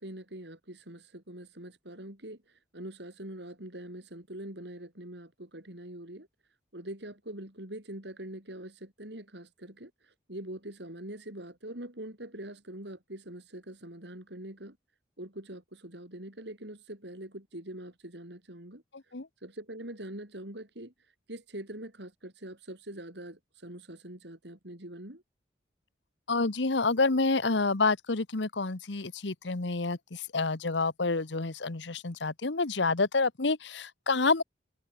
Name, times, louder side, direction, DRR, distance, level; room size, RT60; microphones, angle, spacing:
voice 1, 0.0-6.3 6.7-14.8 15.2-18.8 19.4-20.9 21.3-25.2, right 1 dB, 70° right, 4.8 m, -43 dB
voice 2, 18.9-19.3 26.3-34.4, left 3 dB, 75° left, 1.2 m, -28 dB
head